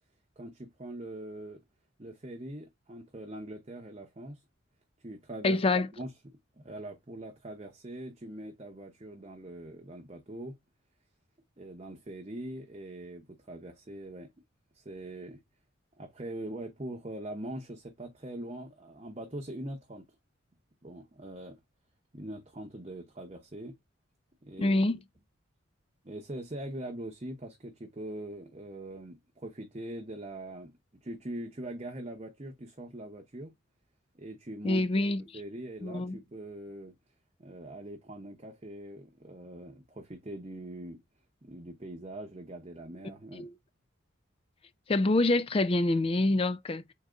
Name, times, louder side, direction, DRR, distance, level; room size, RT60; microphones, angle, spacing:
voice 1, 0.4-1.6 2.0-4.4 5.0-5.6 6.0-6.1 6.6-10.6 11.6-14.3 14.7-15.4 16.0-20.1 20.8-21.6 22.1-23.7 24.4-24.9 26.0-33.5 34.1-35.0 35.3-36.9 37.4-41.0 41.4-43.5, right 1 dB, 30° right, 0.8 m, -42 dB
voice 2, 5.4-5.9 24.6-25.0 34.6-35.2 35.8-36.2 43.3-43.5 44.9-46.9, left 2 dB, 25° left, 0.3 m, -26 dB
3.9 x 3.8 x 3.4 m
head